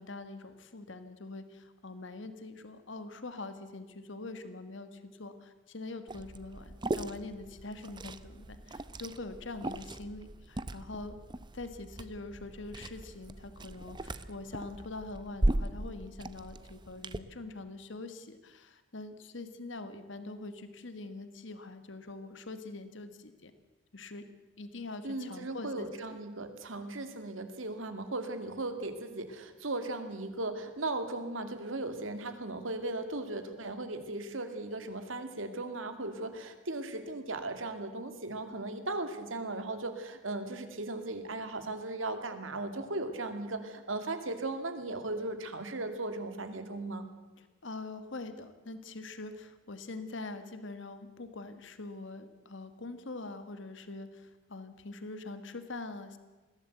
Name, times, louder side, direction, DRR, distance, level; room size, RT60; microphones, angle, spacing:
voice 1, 0.0-11.2 11.5-23.5 23.9-24.3 24.6-26.2 47.4-56.2, left 2 dB, 70° left, 10 dB, 1.6 m, -44 dB
Liquid, 6.1-17.2, right 1 dB, 25° right, 0.6 m, -38 dB
voice 2, 25.0-47.0, right 2 dB, 90° right, 8 dB, 2.4 m, -37 dB
21.0 x 16.0 x 8.0 m, 1.2 s
head